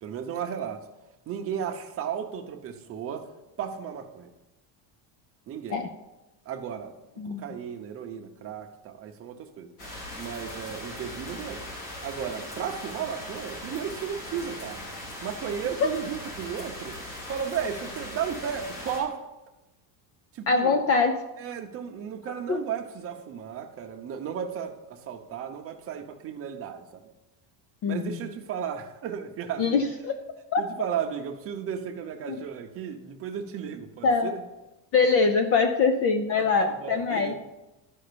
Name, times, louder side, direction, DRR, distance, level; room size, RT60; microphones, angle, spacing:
voice 1, 0.0-0.8 1.3-3.3 3.6-4.3 5.5-5.8 6.5-6.9 7.2-9.7 10.2-11.6 12.0-14.8 15.2-17.0 17.3-19.2 20.3-20.8 21.4-27.0 27.9-29.8 30.6-34.4 36.4-37.3, right 8 dB, 30° right, 4 dB, 0.8 m, -34 dB
sound 1, 9.8-19.0, left 1 dB, 65° left, 4.3 m, -39 dB
voice 2, 20.5-21.2 22.5-22.6 27.8-28.2 29.6-30.2 30.5-30.7 34.0-34.3 34.9-37.3, left 4 dB, 35° left, 8 dB, 0.4 m, -23 dB
12.0 x 5.3 x 6.8 m, 1.0 s
cardioid pair, 180°, 46 cm